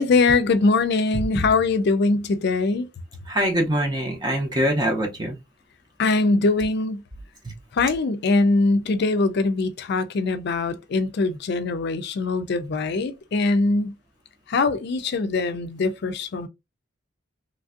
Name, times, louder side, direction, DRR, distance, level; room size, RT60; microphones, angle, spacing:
voice 1, 0.0-2.9 6.0-7.0 7.7-13.9 14.5-16.5, left 3 dB, 60° left, 0.4 m, -22 dB
voice 2, 3.3-5.4, equal, 20° right, 0.6 m, -23 dB
3.2 x 2.5 x 2.4 m
head